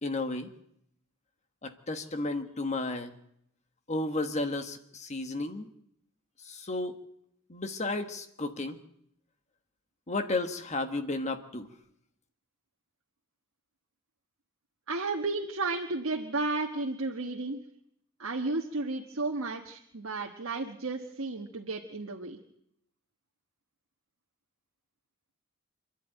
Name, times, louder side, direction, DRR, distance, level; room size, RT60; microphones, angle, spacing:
voice 1, 0.0-0.5 1.6-3.2 3.9-5.7 6.4-7.0 7.5-8.8 10.1-11.7, left 2 dB, 35° left, 7 dB, 1.4 m, -33 dB
voice 2, 14.9-17.6 18.2-22.4, right 3 dB, 70° right, 1 dB, 1.3 m, -33 dB
26.5 x 11.0 x 9.0 m, 0.75 s
head